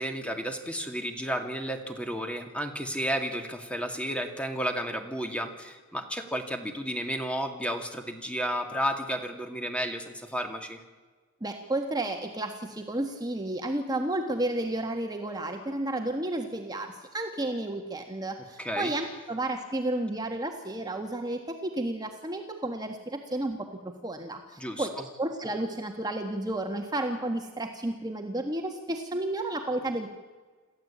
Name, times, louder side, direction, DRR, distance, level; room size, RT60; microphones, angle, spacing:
voice 1, 0.0-10.8 18.6-18.9 24.6-25.0, equal, 5° left, 5 dB, 2.4 m, -32 dB
voice 2, 11.4-30.1, right 1 dB, 20° right, 4 dB, 1.5 m, -32 dB
28.0 x 14.0 x 8.6 m, 1.4 s
head